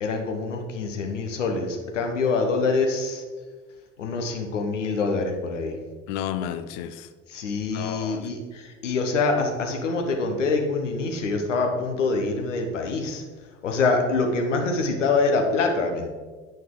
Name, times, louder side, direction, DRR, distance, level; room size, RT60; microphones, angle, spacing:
voice 1, 0.0-3.2 4.0-5.8 7.3-13.2 13.6-16.1, left 3 dB, 80° left, 3 dB, 1.0 m, -25 dB
voice 2, 6.1-7.1 7.7-8.2, left 10 dB, 65° left, 11 dB, 0.6 m, -31 dB
8.8 x 5.3 x 3.7 m, 1.4 s
figure-of-eight pair, 55°, 36 cm